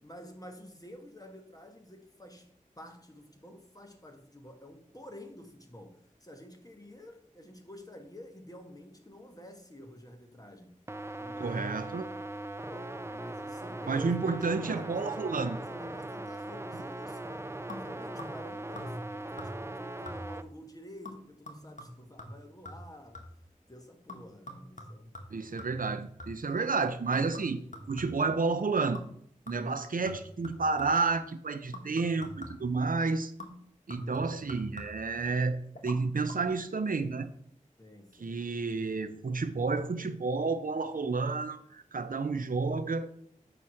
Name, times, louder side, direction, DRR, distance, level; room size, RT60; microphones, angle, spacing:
voice 1, 0.0-10.8 11.2-11.8 12.6-17.5 17.8-23.3 23.7-25.2 26.3-26.5 37.8-38.4, left 1 dB, 25° left, 1.4 m, -50 dB
sound 1, 10.9-20.4, right 1 dB, 20° right, 0.4 m, -40 dB
voice 2, 11.4-12.1 13.9-15.6 25.3-27.6 27.9-29.0 29.5-33.3 33.9-37.3 38.2-43.1, right 4 dB, 85° right, 0.6 m, -30 dB
sound 2, 17.7-18.5 18.8-19.1 19.4-19.8 20.1-20.5 21.0-23.5 24.1-26.6 27.1-28.4 28.9-29.2 29.5-31.1 31.7-32.8 33.4-35.2 35.7-36.0 36.3-36.4, left 1 dB, 65° left, 1.4 m, -45 dB
9.0 x 3.1 x 6.3 m
wide cardioid pair, 60°, 14 cm